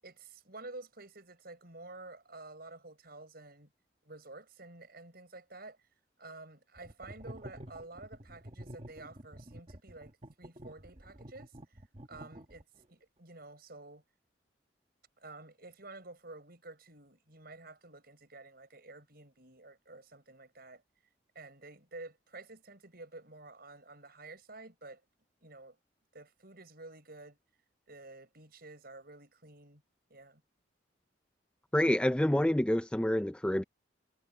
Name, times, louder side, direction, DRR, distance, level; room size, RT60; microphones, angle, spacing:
voice 1, 0.0-3.7 4.0-5.8 6.2-11.6 12.1-14.0 15.2-20.8 21.3-25.0 25.4-25.8 26.1-27.4 27.9-29.8 30.1-30.4, right 2 dB, 50° right, 6.8 m, -50 dB
sound 1, 6.8-12.8, right 1 dB, 30° right, 1.3 m, -49 dB
voice 2, 31.7-33.6, left 1 dB, 5° left, 0.3 m, -27 dB
head